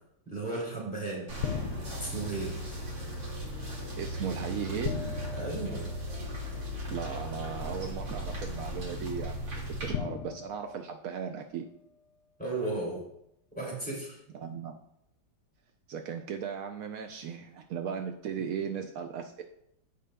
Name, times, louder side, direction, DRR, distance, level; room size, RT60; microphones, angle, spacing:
voice 1, 0.3-1.3 2.0-2.6 5.3-5.8 12.4-13.0 13.5-14.2, right 2 dB, 5° left, -5 dB, 2.8 m, -34 dB
sound 1, 1.3-9.9, equal, 70° right, 2.8 m, -37 dB
sound 2, 1.4-2.4 4.8-6.5 7.7-7.8 9.9-11.6, left 7 dB, 70° left, 0.9 m, -38 dB
voice 2, 4.0-5.1 6.9-11.7 14.3-14.8 15.9-19.4, right 7 dB, 85° right, 5 dB, 0.7 m, -37 dB
15.0 x 5.2 x 2.2 m, 0.78 s
omnidirectional pair, 2.1 m